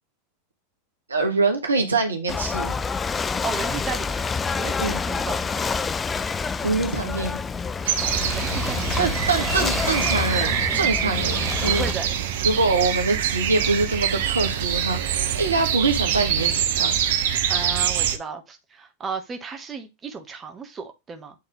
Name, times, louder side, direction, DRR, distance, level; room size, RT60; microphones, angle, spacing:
voice 1, 1.1-2.7 4.8-5.0 6.6-7.4 9.0-11.9 12.4-16.9, right 3 dB, 80° right, 1.5 m, -24 dB
Ocean / Boat Water vehicle, 2.3-11.9, left 5 dB, 20° left, 0.4 m, -27 dB
voice 2, 3.4-5.4 8.3-9.3 11.6-12.5 17.4-21.3, right 5 dB, 25° right, 1.4 m, -34 dB
sound 1, 7.8-18.2, right 9 dB, 60° right, 0.9 m, -25 dB
8.5 x 3.7 x 3.4 m
figure-of-eight pair, 85°, 0 cm